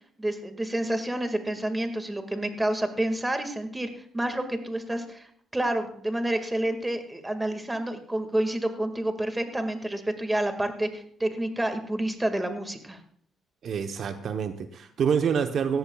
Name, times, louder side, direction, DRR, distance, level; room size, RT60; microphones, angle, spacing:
voice 1, 0.2-5.3 5.5-13.0, right 1 dB, 10° right, 7 dB, 1.9 m, -29 dB
voice 2, 13.6-15.8, right 7 dB, 60° right, 7 dB, 0.9 m, -27 dB
17.0 x 14.0 x 2.3 m, 0.65 s
cardioid pair, 90°, 0 cm